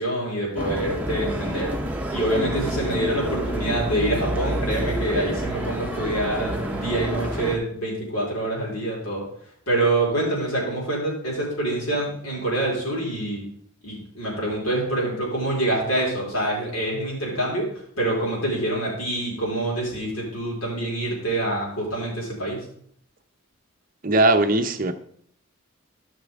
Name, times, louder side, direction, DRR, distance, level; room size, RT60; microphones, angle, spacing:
voice 1, 0.0-1.7 2.1-9.2 9.7-13.4 13.8-17.7 18.0-22.6, right 1 dB, 75° left, 4.5 m, -26 dB
sound 1, 0.6-7.6, equal, 5° right, 1.0 m, -28 dB
voice 2, 24.0-24.9, right 2 dB, 40° right, 0.7 m, -19 dB
15.0 x 5.9 x 3.6 m
head